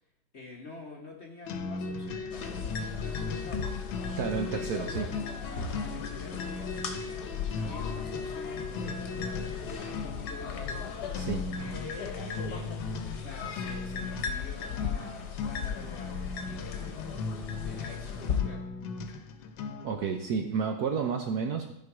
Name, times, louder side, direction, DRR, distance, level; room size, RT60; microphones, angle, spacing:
voice 1, 0.3-3.8 4.4-11.0 11.6-12.7 13.2-17.2 17.6-18.6, left 3 dB, 40° left, 0 dB, 1.1 m, -47 dB
sound 1, 1.5-20.0, left 4 dB, 90° left, 1.6 m, -38 dB
sound 2, 2.3-18.4, left 6 dB, 60° left, 1.4 m, -37 dB
voice 2, 4.2-5.1 11.1-11.5 19.8-21.7, right 6 dB, 65° right, 4 dB, 1.1 m, -31 dB
13.5 x 4.6 x 4.8 m, 0.76 s
omnidirectional pair, 2.2 m